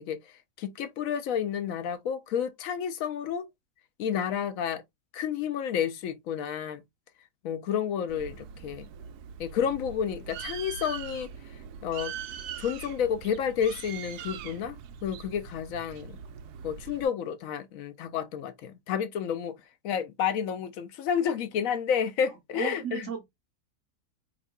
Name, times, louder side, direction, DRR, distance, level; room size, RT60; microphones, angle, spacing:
voice 1, 0.0-3.5 4.0-4.8 5.1-6.8 7.4-8.9 9.4-11.3 11.8-12.1 12.6-16.2 16.6-19.5 19.8-23.1, left 8 dB, 65° left, 0.9 m, -30 dB
Bird, 8.1-17.0, right 8 dB, 80° right, 1.1 m, -42 dB
voice 2, 22.3-23.3, right 7 dB, 55° right, 1.1 m, -36 dB
4.4 x 3.7 x 2.3 m
omnidirectional pair, 1.7 m